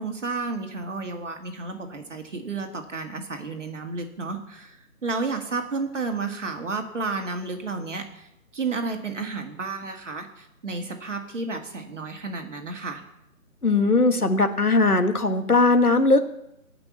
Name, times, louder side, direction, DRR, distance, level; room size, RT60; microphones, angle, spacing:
voice 1, 0.0-8.3 8.5-13.0, right 4 dB, 55° right, 4 dB, 2.3 m, -32 dB
voice 2, 13.6-16.3, left 3 dB, 85° left, 7 dB, 1.8 m, -19 dB
17.5 x 6.1 x 7.3 m, 0.84 s
figure-of-eight pair, 150°, 43 cm